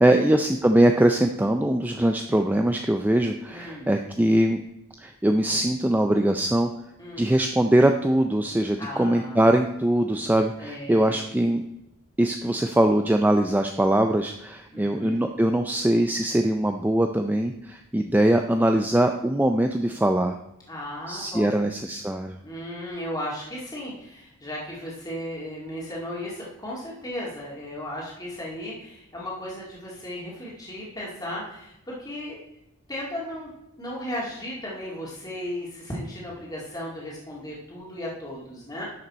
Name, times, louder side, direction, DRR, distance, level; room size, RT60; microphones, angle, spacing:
voice 1, 0.0-4.6 5.0-6.7 7.2-11.6 12.2-20.4 21.1-22.4, right 1 dB, 10° right, 5 dB, 0.3 m, -22 dB
voice 2, 3.5-3.9 7.0-7.4 8.8-9.5 10.6-11.3 14.7-15.2 20.7-21.6 22.4-32.4 32.9-33.5 33.8-38.8, left 1 dB, 15° left, -5 dB, 2.1 m, -35 dB
10.5 x 6.7 x 4.2 m, 0.85 s
head